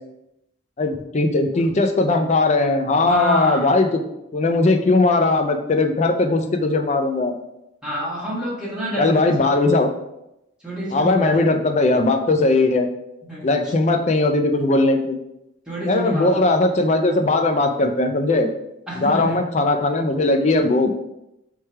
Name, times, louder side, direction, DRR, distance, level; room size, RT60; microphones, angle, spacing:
voice 1, 0.8-4.0 4.3-7.4 9.0-9.9 10.9-12.9 13.4-15.2 15.9-18.5 19.0-20.9, left 2 dB, 40° left, 6 dB, 0.4 m, -19 dB
voice 2, 3.0-3.8 7.8-9.4 10.6-11.4 13.3-13.7 15.7-16.8 18.9-19.4, equal, 5° right, -9 dB, 1.6 m, -28 dB
3.4 x 3.3 x 4.4 m, 0.86 s
head